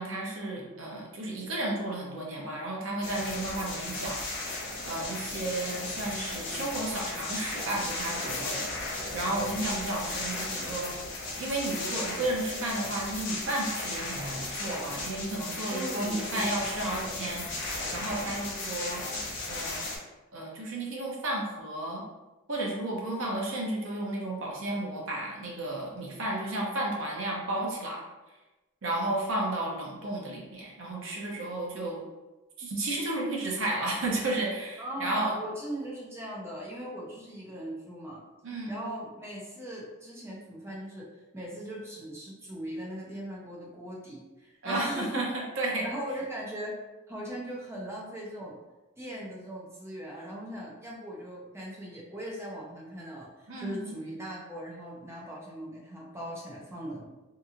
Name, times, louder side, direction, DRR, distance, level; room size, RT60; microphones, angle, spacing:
voice 1, 0.0-8.6 9.1-10.9 11.4-19.0 19.5-19.8 20.3-22.0 22.5-28.0 28.8-32.0 32.6-35.4 38.4-38.9 44.6-45.8 53.5-53.9, right 1 dB, 60° right, -2 dB, 0.7 m, -33 dB
sound 1, 3.0-20.0, left 2 dB, 55° left, 0.6 m, -36 dB
voice 2, 15.7-16.9 34.8-38.2 38.7-41.1 41.3-45.3 45.8-46.8 47.1-48.6 49.0-57.1, right 1 dB, 10° right, -4 dB, 0.5 m, -39 dB
2.8 x 2.6 x 2.4 m, 1.1 s
head